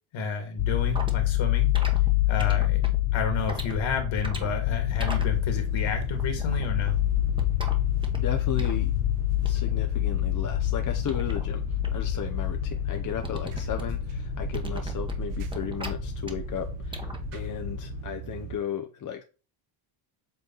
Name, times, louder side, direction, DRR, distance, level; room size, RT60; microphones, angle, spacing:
voice 1, 0.1-1.8 2.3-2.8 3.1-7.0, left 3 dB, 65° left, 2.3 m, -31 dB
sound 1, 0.6-18.0, left 20 dB, 85° left, 0.6 m, -27 dB
sound 2, 0.9-17.3, right 3 dB, 10° right, 1.2 m, -39 dB
sound 3, 5.0-18.6, right 11 dB, 90° right, 0.9 m, -39 dB
voice 2, 8.1-8.9 9.4-11.6 11.9-19.2, left 9 dB, 40° left, 0.8 m, -35 dB
8.1 x 3.5 x 3.9 m
cardioid pair, 110°, 50 cm